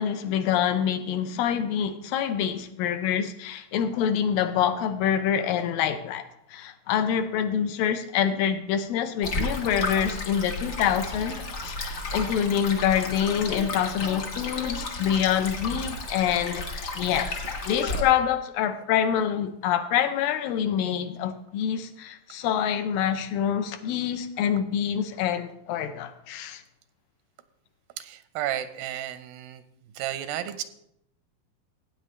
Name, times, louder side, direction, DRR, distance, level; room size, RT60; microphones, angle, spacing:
voice 1, 0.0-26.6, left 9 dB, 85° left, 2.5 m, -26 dB
Stream, 9.2-18.0, left 2 dB, 55° left, 1.1 m, -33 dB
voice 2, 28.0-29.6 30.0-30.6, right 12 dB, 85° right, 2.5 m, -32 dB
15.5 x 8.9 x 3.2 m
omnidirectional pair, 4.0 m